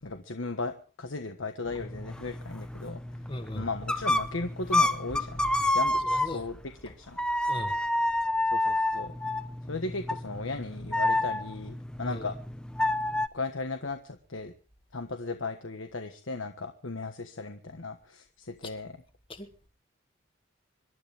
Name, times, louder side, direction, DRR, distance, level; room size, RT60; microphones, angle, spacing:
voice 1, 0.0-3.2 3.5-5.4 5.7-6.6 6.8-7.2 8.5-9.1 9.6-12.3 13.3-14.5 14.9-18.9, left 3 dB, 85° left, 7 dB, 1.4 m, -36 dB
sound 1, 1.6-6.7 7.2-13.3, left 1 dB, 5° left, 0.7 m, -29 dB
voice 2, 3.3-3.7 6.1-6.4 6.9-7.0 7.5-7.8 12.0-12.3 18.6-18.7 19.3-19.7, left 1 dB, 25° left, 7 dB, 2.0 m, -39 dB
26.0 x 12.5 x 3.5 m, 0.37 s
head